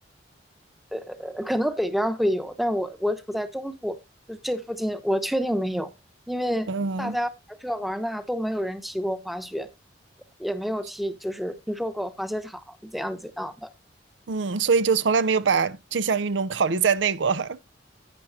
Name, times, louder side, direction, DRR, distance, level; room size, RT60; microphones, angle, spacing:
voice 1, 0.9-4.0 4.3-5.9 6.3-6.7 7.0-9.7 10.4-13.7, equal, ahead, 0.8 m, -28 dB
voice 2, 6.7-7.2 14.3-17.6, right 5 dB, 75° right, 0.6 m, -23 dB
11.5 x 9.0 x 2.7 m
head